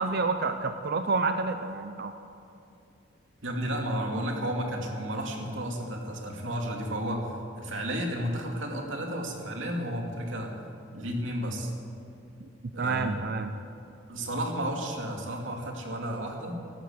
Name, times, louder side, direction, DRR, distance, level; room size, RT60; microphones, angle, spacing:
voice 1, 0.0-2.1 12.8-13.5, right 4 dB, 55° right, 8 dB, 0.6 m, -28 dB
voice 2, 3.4-10.5 10.9-11.7 12.7-13.2 14.1-16.6, equal, 85° right, 1 dB, 2.6 m, -32 dB
13.5 x 12.0 x 8.0 m, 2.7 s
head